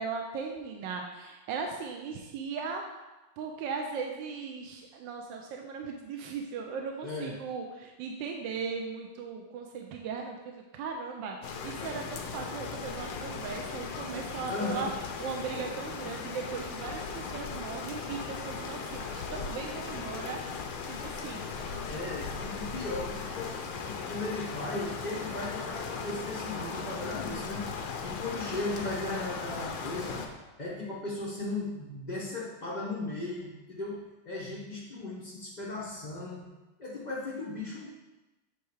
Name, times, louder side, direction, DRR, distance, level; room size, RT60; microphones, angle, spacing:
voice 1, 0.0-2.8 3.4-11.4 11.6-14.9 15.2-20.4 20.9-21.5, right 5 dB, 75° right, 2 dB, 1.2 m, -38 dB
voice 2, 7.0-7.3 14.5-14.9 21.9-23.6 23.8-27.7 28.0-30.2 30.6-34.0 34.3-36.4 36.8-37.9, left 2 dB, 55° left, -5 dB, 0.5 m, -36 dB
sound 1, 11.4-30.3, left 5 dB, 80° left, 1.5 m, -38 dB
7.9 x 3.1 x 4.7 m, 1.1 s
omnidirectional pair, 2.3 m